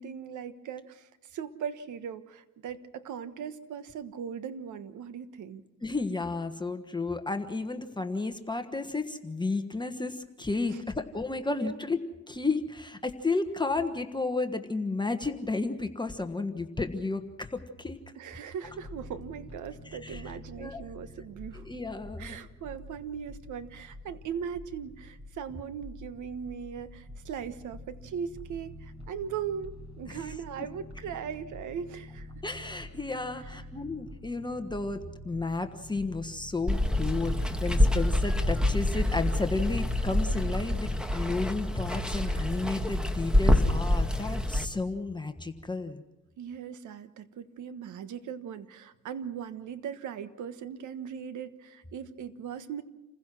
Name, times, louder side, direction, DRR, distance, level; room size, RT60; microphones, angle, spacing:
voice 1, 0.0-5.6 10.7-10.8 11.5-11.8 18.1-21.7 22.2-32.3 33.4-33.5 46.4-52.8, right 7 dB, 75° right, 12 dB, 1.4 m, -39 dB
voice 2, 5.8-12.0 12.3-18.0 19.8-20.8 21.5-22.4 30.1-30.3 32.4-46.0, left 3 dB, 15° left, 6 dB, 1.3 m, -32 dB
sound 1, 18.6-38.3, left 1 dB, 20° right, 5.1 m, -47 dB
Water, 36.7-44.6, left 1 dB, 5° right, 1.5 m, -26 dB
28.5 x 16.0 x 6.2 m, 0.98 s
cardioid pair, 90°, 30 cm